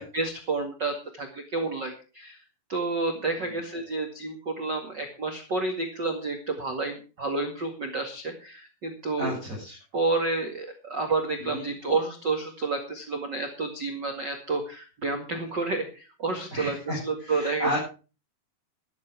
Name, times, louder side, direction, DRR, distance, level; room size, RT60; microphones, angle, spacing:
voice 1, 0.0-2.4 2.7-9.4 9.9-17.8, right 3 dB, 45° right, 3 dB, 1.4 m, -30 dB
voice 2, 9.2-9.8 11.4-11.6 16.5-17.8, equal, 15° right, -5 dB, 7.2 m, -32 dB
14.0 x 12.5 x 4.8 m, 0.35 s
omnidirectional pair, 5.5 m